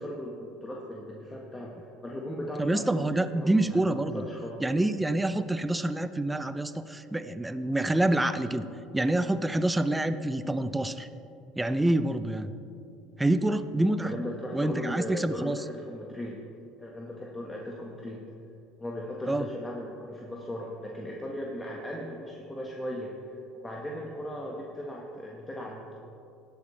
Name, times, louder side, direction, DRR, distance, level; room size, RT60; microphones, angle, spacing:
voice 1, 0.0-1.7 2.0-4.6 14.0-16.4 16.8-18.2 18.8-26.0, equal, 15° left, -2 dB, 1.5 m, -37 dB
voice 2, 2.6-4.2 4.6-8.6 8.9-11.1 11.6-12.5 13.2-14.1 14.5-15.6 19.3-19.5, right 1 dB, 10° right, 12 dB, 0.6 m, -27 dB
19.5 x 8.1 x 3.3 m, 2.6 s
hypercardioid pair, 70°, 0 cm